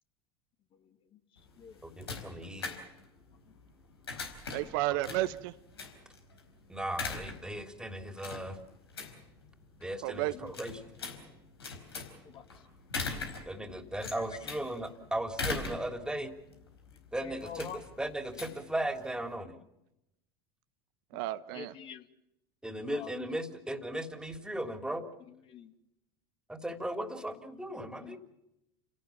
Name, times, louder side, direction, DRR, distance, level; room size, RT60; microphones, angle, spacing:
voice 1, 0.7-1.2 1.6-1.8 3.5-3.6 10.2-10.5 12.2-12.7 14.2-14.5 16.9-17.8 21.1-21.3 21.5-22.1 22.9-23.1 25.3-25.7 27.4-28.2, left 8 dB, 40° left, 7 dB, 2.4 m, -48 dB
sound 1, 1.4-19.3, left 4 dB, 85° left, 4.4 m, -42 dB
voice 2, 1.8-2.7 6.7-8.6 9.8-10.7 13.5-16.3 17.1-17.7 18.0-19.6 22.6-25.1 26.5-28.2, right 1 dB, 5° right, 8 dB, 3.3 m, -37 dB
voice 3, 4.5-5.5 10.0-10.5 21.1-21.7, right 16 dB, 65° right, 12 dB, 1.1 m, -32 dB
29.5 x 17.5 x 7.3 m, 0.87 s
hypercardioid pair, 80°, 13 cm